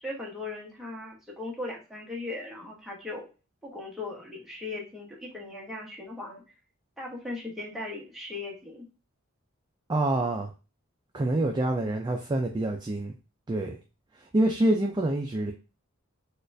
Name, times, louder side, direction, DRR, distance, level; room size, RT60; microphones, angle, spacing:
voice 1, 0.0-3.3 3.6-6.4 7.0-8.9, left 2 dB, ahead, -4 dB, 0.9 m, -38 dB
voice 2, 9.9-10.5 11.1-13.2 13.5-13.8 14.1-15.5, right 1 dB, 20° right, 3 dB, 0.3 m, -26 dB
4.2 x 2.4 x 2.5 m, 0.31 s
head